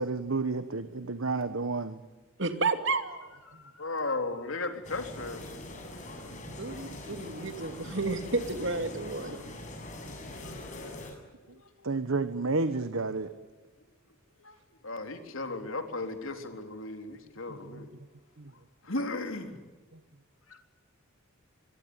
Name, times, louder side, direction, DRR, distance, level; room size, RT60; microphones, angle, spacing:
voice 1, 0.0-2.0 6.5-6.6 10.4-10.6 11.8-13.3 17.5-17.9 18.4-18.5, right 3 dB, 80° right, 11 dB, 1.3 m, -31 dB
voice 2, 2.4-3.3 6.5-9.6, right 3 dB, 60° right, 8 dB, 2.8 m, -31 dB
voice 3, 3.5-5.6 10.4-11.0 11.4-11.6 14.4-14.6 14.8-17.9 18.8-19.6 20.5-20.6, left 2 dB, 75° left, 6 dB, 3.7 m, -36 dB
sound 1, 4.8-11.1, left 1 dB, 35° left, 7.6 m, -43 dB
25.0 x 23.0 x 9.7 m, 1.2 s
head